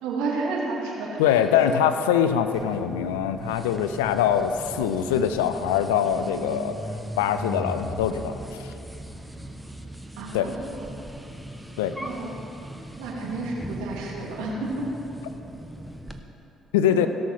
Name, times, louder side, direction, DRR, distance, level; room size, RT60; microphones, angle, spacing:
voice 1, 0.0-1.7 10.2-11.0 12.0-12.3 13.0-14.9 16.9-17.1, right 3 dB, 80° right, -3 dB, 2.4 m, -31 dB
voice 2, 1.2-6.8 7.2-8.7 10.3-10.5 11.8-11.9 16.7-17.1, left 9 dB, 90° left, 10 dB, 0.5 m, -23 dB
sound 1, 2.5-16.2, equal, 5° right, 1.1 m, -38 dB
17.0 x 6.5 x 5.9 m, 2.9 s
hypercardioid pair, 55°, 0 cm